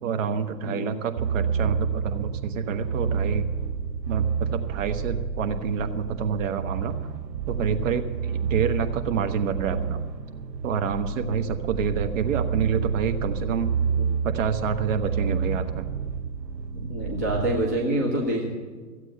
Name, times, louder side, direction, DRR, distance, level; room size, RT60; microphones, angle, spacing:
voice 1, 0.0-3.4 4.1-6.9 7.5-10.0 10.6-13.7 14.2-15.9, right 6 dB, 50° right, 7 dB, 1.3 m, -28 dB
voice 2, 0.6-0.9 7.5-7.8 14.0-14.2 16.7-18.5, right 1 dB, 10° right, -2 dB, 0.4 m, -27 dB
sound 1, 1.2-17.7, right 6 dB, 80° right, 1.1 m, -29 dB
15.0 x 8.1 x 8.0 m, 1.4 s
hypercardioid pair, 140°, 50 cm